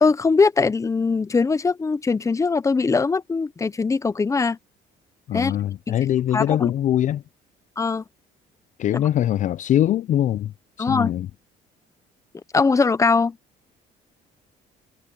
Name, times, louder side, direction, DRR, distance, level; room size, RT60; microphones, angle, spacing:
voice 1, 0.0-4.6 5.3-5.5 5.9-6.0 6.3-6.7 7.8-8.0 8.9-9.0 10.8-11.1 12.5-13.4, left 4 dB, 20° left, 0.7 m, -21 dB
voice 2, 5.3-7.2 8.8-10.5 10.8-11.3, left 11 dB, 45° left, 0.4 m, -22 dB
cardioid pair, 110°, 17 cm